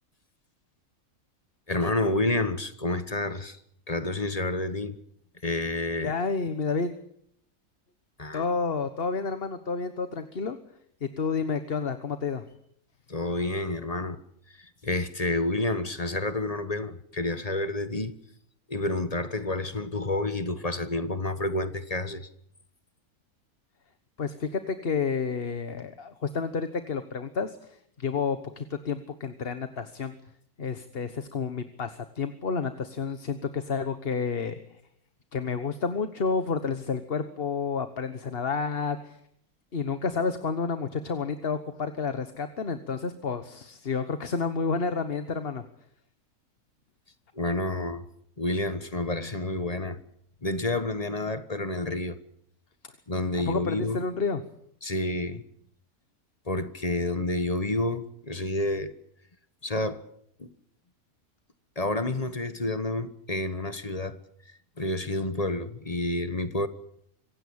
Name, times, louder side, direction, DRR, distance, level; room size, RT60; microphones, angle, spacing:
voice 1, 1.7-3.6 3.9-5.0 5.4-6.1 8.2-8.4 13.1-14.2 14.6-18.1 18.7-22.3 47.3-48.1 48.4-50.0 50.4-52.2 53.1-54.0 54.8-55.4 56.5-58.9 59.6-60.0 60.4-60.5 61.8-64.2 64.8-66.7, left 2 dB, 25° left, 1.3 m, -29 dB
voice 2, 6.0-6.9 8.3-10.6 11.0-12.5 24.2-30.1 30.6-34.8 35.3-39.2 39.7-45.6 52.8-52.9 53.5-54.4, left 5 dB, 45° left, 1.4 m, -30 dB
25.5 x 16.5 x 8.7 m
omnidirectional pair, 1.5 m